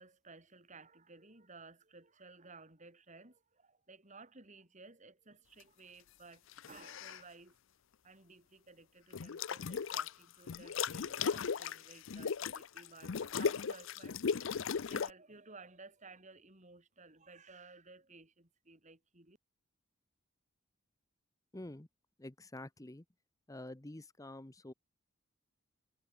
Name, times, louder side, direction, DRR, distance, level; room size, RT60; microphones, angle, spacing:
voice 1, 0.0-7.5 8.0-14.2 14.6-19.4, right 3 dB, 35° right, 4.2 m, -57 dB
sound 1, 6.5-7.2 9.1-10.1 10.5-15.1, left 6 dB, 65° left, 0.5 m, -37 dB
voice 2, 21.5-21.9 22.2-23.0 23.5-24.7, left 1 dB, 15° left, 0.8 m, -48 dB
head